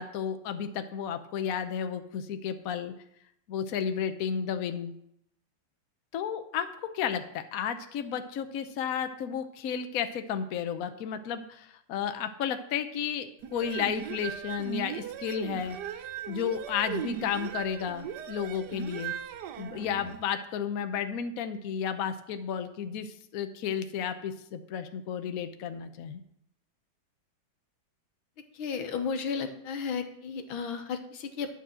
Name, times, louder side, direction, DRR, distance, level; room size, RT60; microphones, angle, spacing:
voice 1, 0.0-2.9 3.5-4.9 6.1-6.7 6.9-15.8 16.3-19.1 19.6-26.2, left 8 dB, 60° left, 8 dB, 1.0 m, -32 dB
sound 1, 13.4-20.2, right 9 dB, 65° right, 1.1 m, -38 dB
voice 2, 28.5-31.5, left 6 dB, 80° left, 6 dB, 1.9 m, -33 dB
11.0 x 5.4 x 7.5 m, 0.75 s
omnidirectional pair, 2.2 m